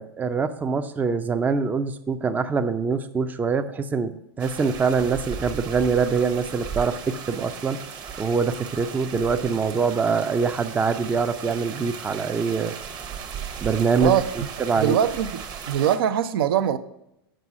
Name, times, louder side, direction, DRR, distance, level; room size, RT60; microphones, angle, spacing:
voice 1, 0.0-7.8 8.2-12.8 13.6-14.1 14.6-15.0, right 5 dB, 15° right, 0.5 m, -24 dB
sound 1, 4.4-16.0, right 7 dB, 30° right, 1.0 m, -36 dB
voice 2, 14.0-15.4 15.7-16.8, right 10 dB, 65° right, 0.6 m, -22 dB
7.6 x 5.3 x 6.0 m
hypercardioid pair, 105°, 13 cm